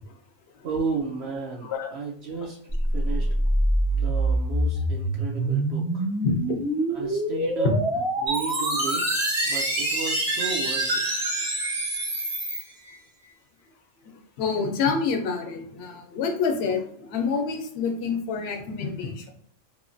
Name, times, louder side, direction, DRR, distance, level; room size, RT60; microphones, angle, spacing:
voice 1, 0.6-2.6 2.9-3.3 3.9-6.1 6.9-7.7 8.2-9.0 9.4-11.0, right 4 dB, 65° right, -2 dB, 0.8 m, -33 dB
sound 1, 2.7-12.6, right 1 dB, 5° right, 0.5 m, -26 dB
voice 2, 6.2-6.6 14.4-19.3, left 5 dB, 65° left, 4 dB, 0.8 m, -27 dB
Chime, 8.3-13.0, right 2 dB, 80° right, 1.3 m, -29 dB
3.0 x 2.2 x 2.5 m, 0.64 s
omnidirectional pair, 1.3 m